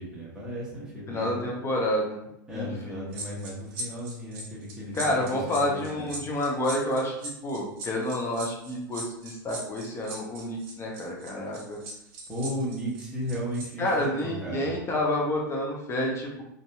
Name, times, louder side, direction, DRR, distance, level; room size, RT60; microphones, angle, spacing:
voice 1, 0.0-1.7 2.5-6.1 12.3-14.7, equal, 5° right, -7 dB, 1.1 m, -35 dB
voice 2, 1.1-2.2 2.5-3.0 4.9-11.8 13.8-16.4, left 1 dB, 25° left, -2 dB, 0.6 m, -29 dB
sound 1, 3.1-13.7 14.0-14.2, right 1 dB, 55° right, 0.9 m, -39 dB
2.7 x 2.6 x 2.3 m, 0.79 s
hypercardioid pair, 100°, 11 cm